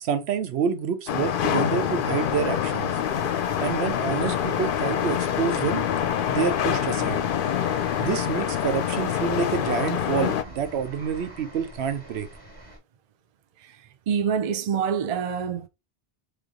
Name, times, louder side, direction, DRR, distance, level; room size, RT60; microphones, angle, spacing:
voice 1, 0.0-2.9 3.6-5.9 6.3-7.2 8.0-12.3, right 7 dB, 75° right, 0.9 m, -28 dB
sound 1, 1.1-10.4, left 9 dB, 60° left, 0.6 m, -26 dB
sound 2, 2.1-12.8, right 1 dB, 30° right, 1.5 m, -46 dB
voice 2, 14.1-15.7, right 7 dB, 45° right, 0.5 m, -26 dB
3.3 x 3.2 x 3.6 m
omnidirectional pair, 1.1 m